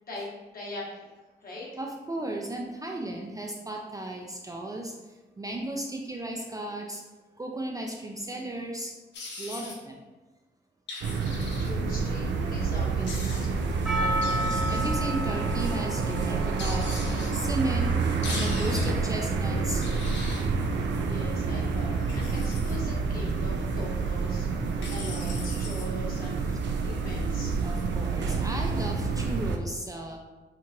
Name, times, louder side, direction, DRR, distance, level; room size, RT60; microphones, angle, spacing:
voice 1, 0.1-1.1 1.4-1.7 11.3-13.9 21.0-24.5 24.9-26.5 26.8-27.6, left 1 dB, 50° left, -4 dB, 1.3 m, -41 dB
voice 2, 1.8-4.9 5.4-7.0 7.4-8.9 9.4-10.0 14.0-17.0 17.3-17.9 18.3-19.8 27.6-30.2, right 1 dB, 20° right, 0 dB, 0.4 m, -35 dB
sound 1, 9.1-9.7 10.9-11.7 13.1-13.5 14.2-14.9 16.6-17.3 18.2-18.9 19.8-20.4 22.0-22.8 24.8-25.9, left 3 dB, 70° left, 0.8 m, -40 dB
sound 2, 11.0-29.6, right 4 dB, 80° right, 0.4 m, -28 dB
Percussion, 13.9-18.8, right 1 dB, 5° right, 0.7 m, -34 dB
4.5 x 2.4 x 2.8 m, 1.1 s
cardioid pair, 100°, 18 cm